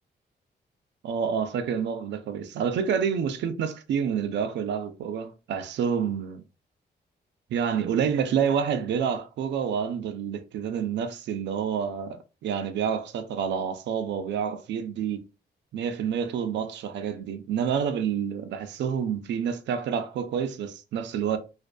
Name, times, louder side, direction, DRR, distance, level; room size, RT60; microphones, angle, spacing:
voice 1, 1.0-6.4 7.5-15.2 15.7-21.4, right 7 dB, 85° right, 0.4 m, -28 dB
2.5 x 2.5 x 2.2 m
wide cardioid pair, 140°, 18 cm